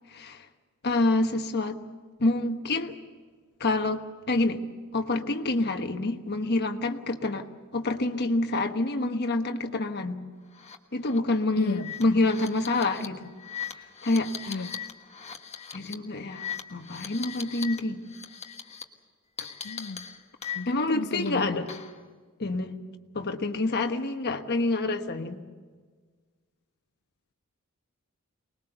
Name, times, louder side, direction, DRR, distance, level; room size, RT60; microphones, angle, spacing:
voice 1, 0.1-0.5 0.8-1.8 2.2-3.0 3.6-4.6 4.9-7.5 7.7-10.2 10.9-13.3 14.0-14.7 15.7-18.0 20.7-21.7 22.4-22.7 23.1-25.4, left 2 dB, 50° left, 5 dB, 1.3 m, -27 dB
sound 1, 10.5-10.8 11.1-11.2 11.7-17.8 18.1-18.8 19.4-20.9 21.3-22.0, left 8 dB, 30° left, 1.3 m, -39 dB
voice 2, 11.6-11.9 14.5-14.8 19.6-20.1 20.5-21.5, left 3 dB, 80° left, 8 dB, 0.7 m, -34 dB
24.5 x 20.5 x 6.8 m, 1.5 s
head